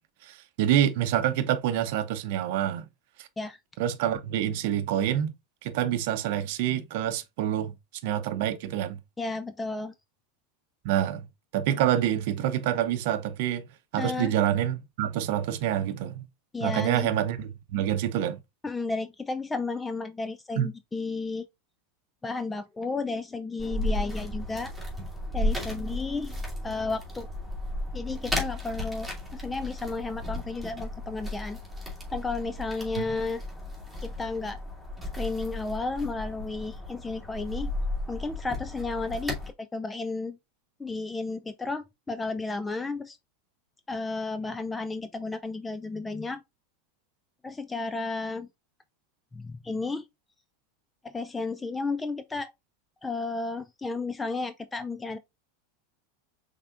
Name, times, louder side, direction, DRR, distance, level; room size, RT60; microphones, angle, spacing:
voice 1, 0.2-2.9 3.2-3.3 3.8-5.3 5.6-7.7 8.0-9.0 10.8-11.3 11.5-13.7 13.9-16.3 16.6-18.4 20.5-20.7 33.0-33.1, right 11 dB, 60° right, 0.7 m, -27 dB
voice 2, 9.2-9.9 14.0-14.3 16.5-17.1 18.6-21.5 22.2-24.7 25.3-27.3 27.9-31.6 32.1-33.4 34.0-34.6 35.1-37.7 38.1-40.4 40.8-43.2 43.9-46.4 47.4-48.5 49.3-50.0 51.0-52.5 53.0-55.2, left 3 dB, 15° left, 0.4 m, -33 dB
sound 1, 23.6-39.5, left 1 dB, ahead, 2.2 m, -34 dB
5.5 x 3.6 x 2.4 m
hypercardioid pair, 90°, 0 cm